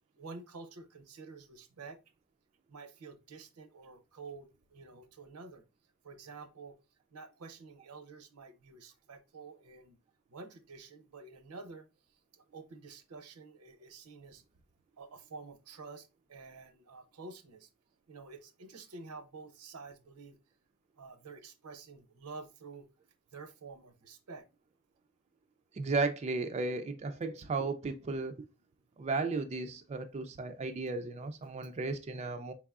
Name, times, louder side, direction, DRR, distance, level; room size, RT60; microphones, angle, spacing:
voice 1, 0.2-2.0 2.7-5.6 6.0-6.8 7.1-10.0 10.3-11.9 12.3-14.4 15.0-17.7 18.1-20.4 21.0-22.9 23.3-24.4 28.2-28.3, right 4 dB, 80° right, 0.7 m, -49 dB
voice 2, 25.7-28.4 29.0-32.5, right 3 dB, 30° right, 0.3 m, -34 dB
4.6 x 3.5 x 2.3 m
head